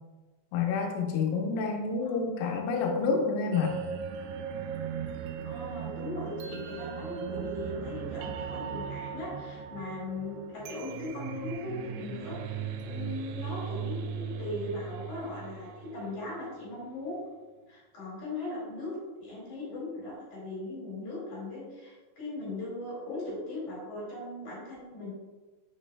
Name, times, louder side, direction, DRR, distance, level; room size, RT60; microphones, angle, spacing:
voice 1, 0.5-3.8, left 5 dB, 80° left, 1 dB, 3.3 m, -28 dB
sound 1, 3.5-16.5, right 7 dB, 90° right, 2.6 m, -38 dB
voice 2, 5.4-17.2 17.7-25.1, left 2 dB, 50° left, -5 dB, 2.8 m, -39 dB
8.3 x 6.6 x 2.2 m, 1.3 s
omnidirectional pair, 5.7 m